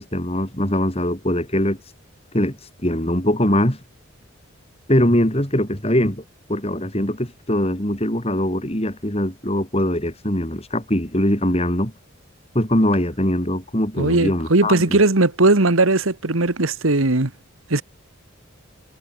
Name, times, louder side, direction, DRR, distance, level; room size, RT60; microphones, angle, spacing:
voice 1, 0.0-1.8 2.3-2.6 2.8-3.8 4.9-6.2 6.5-11.9 12.5-15.0, left 1 dB, 30° left, 4.5 m, -21 dB
voice 2, 14.0-17.3 17.7-17.8, right 2 dB, 80° right, 1.7 m, -18 dB
head